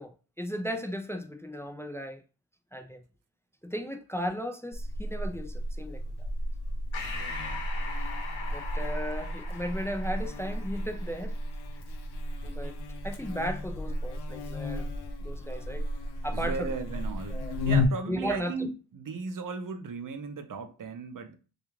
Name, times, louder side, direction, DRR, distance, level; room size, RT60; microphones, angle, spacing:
voice 1, 0.0-2.2 2.7-3.0 3.6-6.0 8.5-11.4 12.4-12.8 13.0-14.9 15.2-15.9 16.2-16.7 17.3-17.6 18.1-18.5, equal, 5° left, 0.3 m, -35 dB
Buzz, 4.7-17.9, left 1 dB, 60° left, 0.6 m, -33 dB
Breathing, 6.9-11.8, left 4 dB, 85° left, 0.8 m, -41 dB
voice 2, 7.1-7.6 16.3-21.3, right 4 dB, 45° right, 0.6 m, -37 dB
2.4 x 2.2 x 3.0 m
cardioid pair, 60°, 45 cm